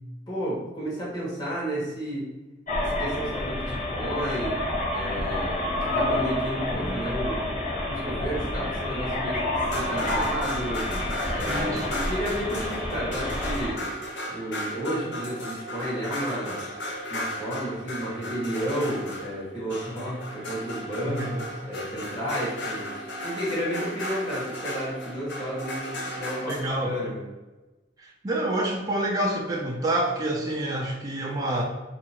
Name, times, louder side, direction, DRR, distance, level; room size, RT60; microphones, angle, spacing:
voice 1, 0.3-2.3 2.8-4.6 4.9-7.5 7.9-9.4 9.7-10.8 11.3-13.8 14.3-16.6 17.1-27.2, equal, 25° left, -8 dB, 1.3 m, -32 dB
sound 1, 2.7-13.7, left 1 dB, 45° left, 0.9 m, -29 dB
sound 2, 9.5-26.7, equal, 80° left, 0.7 m, -35 dB
voice 2, 11.5-11.9 21.2-21.4 26.5-26.9 28.0-31.6, right 1 dB, 20° right, -1 dB, 0.4 m, -27 dB
2.8 x 2.4 x 4.1 m, 1.2 s
head